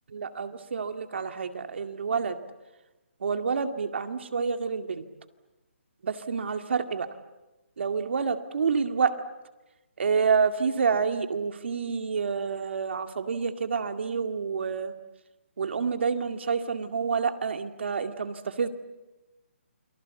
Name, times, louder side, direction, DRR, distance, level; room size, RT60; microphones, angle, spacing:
voice 1, 0.1-2.4 3.2-5.1 6.0-7.1 7.8-9.1 10.0-14.9 15.6-18.7, right 5 dB, 60° right, 7 dB, 2.1 m, -28 dB
28.5 x 24.0 x 8.3 m, 1.1 s
hypercardioid pair, 165°, 7 cm